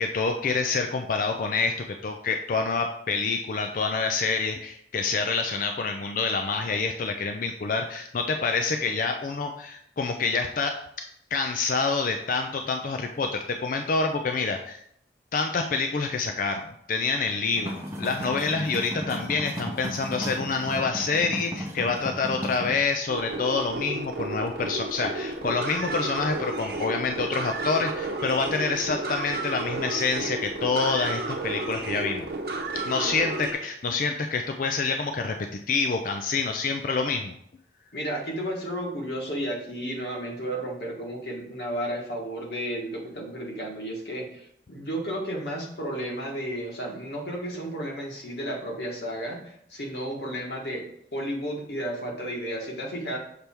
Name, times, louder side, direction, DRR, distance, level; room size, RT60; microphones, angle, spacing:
voice 1, 0.0-1.7 2.0-10.7 11.3-14.8 15.3-16.6 16.9-32.3 32.9-35.4 35.7-37.3, left 4 dB, 50° left, 5 dB, 0.4 m, -27 dB
sound 1, 17.5-22.8, equal, 15° right, 0.7 m, -35 dB
sound 2, 23.1-33.5, right 2 dB, 60° right, 0.9 m, -32 dB
voice 2, 37.9-50.8 51.1-53.2, equal, 65° left, -1 dB, 1.5 m, -33 dB
6.7 x 3.4 x 4.4 m, 0.70 s
head